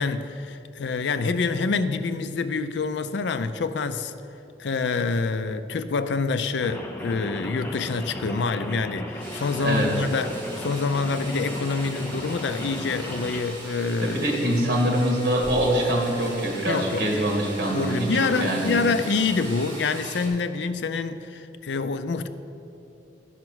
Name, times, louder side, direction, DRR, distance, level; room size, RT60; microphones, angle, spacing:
voice 1, 0.0-4.1 4.6-14.5 16.6-17.1 17.7-22.3, left 4 dB, 75° left, 11 dB, 0.4 m, -26 dB
Rain, 6.6-13.4, equal, 10° left, 0.5 m, -36 dB
sound 1, 9.2-20.3, right 1 dB, 25° right, 1.9 m, -40 dB
voice 2, 14.0-18.8, right 1 dB, 55° right, 0 dB, 1.8 m, -24 dB
11.0 x 5.7 x 6.2 m, 2.8 s
head